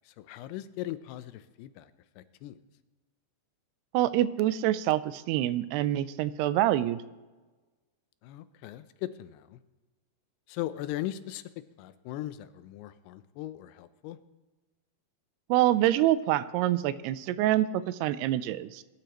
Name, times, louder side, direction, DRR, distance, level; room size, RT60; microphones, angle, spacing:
voice 1, 0.1-1.9 2.2-2.6 8.2-9.6 10.5-11.4 11.8-14.2, left 14 dB, 90° left, 13 dB, 2.7 m, -38 dB
voice 2, 3.9-7.0 15.5-18.8, right 14 dB, 90° right, 15 dB, 2.6 m, -26 dB
20.5 x 12.0 x 3.0 m, 1.2 s
omnidirectional pair, 4.6 m